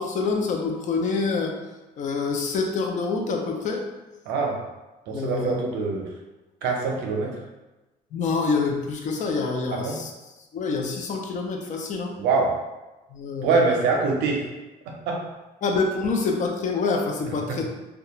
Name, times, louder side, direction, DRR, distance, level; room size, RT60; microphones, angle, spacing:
voice 1, 0.0-1.6 2.0-3.8 5.1-5.6 8.1-10.1 10.5-12.2 13.1-13.5 15.6-17.6, left 4 dB, 50° left, 2 dB, 0.4 m, -26 dB
voice 2, 4.3-4.6 5.1-6.1 6.6-7.4 9.7-10.0 12.2-12.6 13.4-14.5 15.1-15.3 17.5-17.6, right 4 dB, 85° right, 0 dB, 0.6 m, -24 dB
2.4 x 2.2 x 2.9 m, 1.1 s
cardioid pair, 110°, 17 cm